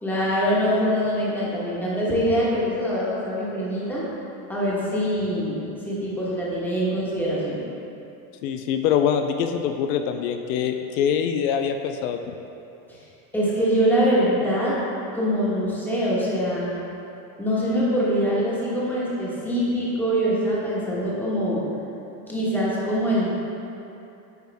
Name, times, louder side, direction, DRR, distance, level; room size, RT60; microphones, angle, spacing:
voice 1, 0.0-4.0 4.5-5.6 5.8-7.6 13.3-14.8 15.1-16.7 17.4-21.6 22.3-23.3, equal, 5° left, -7 dB, 1.2 m, -23 dB
voice 2, 8.4-12.3, left 8 dB, 80° left, 6 dB, 0.6 m, -24 dB
9.3 x 4.7 x 3.4 m, 2.8 s
cardioid pair, 160°, 42 cm